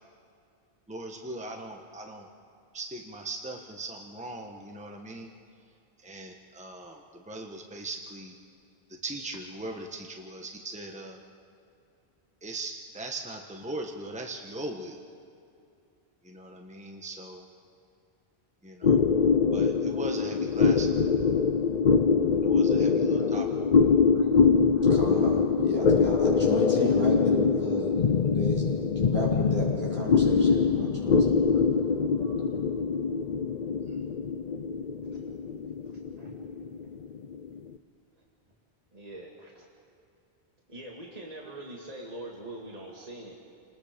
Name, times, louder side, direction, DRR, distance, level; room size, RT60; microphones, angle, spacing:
voice 1, 0.9-2.3 2.7-5.3 6.0-7.0 7.3-8.4 9.0-11.2 12.4-15.0 16.2-17.4 18.6-19.0 19.5-21.1 22.4-23.5 33.9-34.0, right 2 dB, 5° right, 2 dB, 1.3 m, -39 dB
sound 1, 18.8-37.6, left 5 dB, 50° left, 0.7 m, -24 dB
voice 2, 24.1-24.4 24.8-28.7 29.0-31.6 32.2-32.4, equal, 70° right, -5 dB, 6.2 m, -34 dB
voice 3, 35.9-36.3 36.8-37.0 38.9-39.7 40.7-43.3, right 1 dB, 35° right, -2 dB, 2.3 m, -43 dB
29.0 x 20.0 x 5.2 m, 2.5 s
omnidirectional pair, 1.1 m